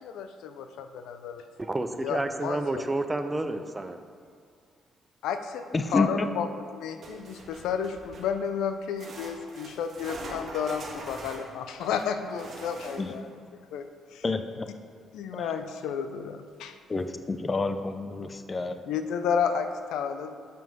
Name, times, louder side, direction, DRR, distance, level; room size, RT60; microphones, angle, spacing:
voice 1, 0.0-1.4 2.0-2.8 5.2-5.6 5.9-13.3 13.7-14.2 15.1-16.8 18.8-20.3, left 7 dB, 90° left, 8 dB, 0.5 m, -32 dB
voice 2, 1.6-4.0, right 2 dB, 20° right, 8 dB, 0.6 m, -30 dB
voice 3, 5.7-6.3 13.0-13.2 14.2-14.7 15.3-15.5 16.9-18.8, left 3 dB, 30° left, 9 dB, 0.5 m, -29 dB
sound 1, 7.0-8.4 9.0-13.3 16.5-16.6 17.0-17.1 17.8-17.9, right 3 dB, 55° right, 1.5 m, -44 dB
7.0 x 6.2 x 5.2 m, 2.1 s
cardioid pair, 90°, 0 cm